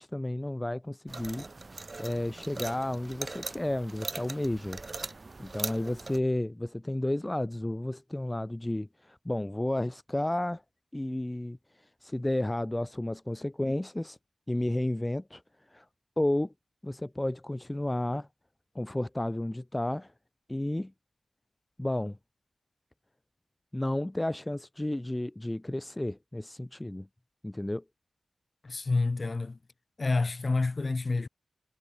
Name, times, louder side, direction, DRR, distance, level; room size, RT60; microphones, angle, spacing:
voice 1, 0.0-4.8 5.4-10.6 10.9-14.2 14.5-15.9 16.2-16.5 16.8-18.3 18.8-20.1 20.5-20.9 21.8-22.2 23.7-27.1 27.4-27.8, left 1 dB, 15° left, 3.6 m, -32 dB
sound 1, 1.1-6.2, right 3 dB, 40° right, 5.9 m, -40 dB
voice 2, 28.6-29.6 30.0-31.3, left 3 dB, 45° left, 3.9 m, -28 dB
wide cardioid pair, 100°, 0 cm